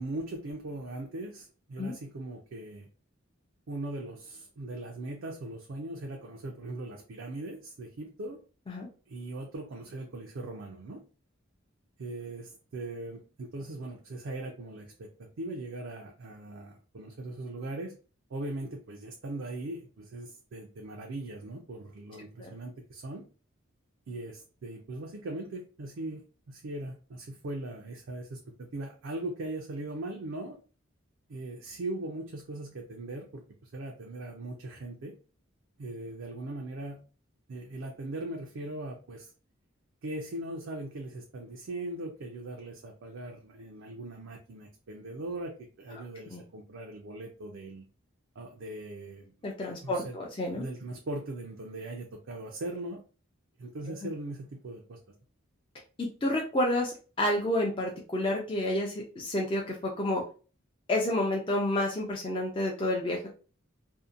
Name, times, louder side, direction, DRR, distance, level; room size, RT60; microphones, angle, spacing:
voice 1, 0.0-2.9 3.7-8.4 9.1-11.0 12.0-17.9 18.3-23.2 24.1-30.6 31.3-35.1 35.8-37.0 37.5-39.3 40.0-47.8 48.4-49.3 49.8-50.2 50.6-53.0 53.6-55.0, right 2 dB, 70° right, 1 dB, 0.4 m, -39 dB
voice 2, 49.4-50.6 56.0-60.2 60.9-63.3, left 1 dB, 25° left, -1 dB, 0.4 m, -30 dB
2.7 x 2.1 x 2.4 m, 0.36 s
head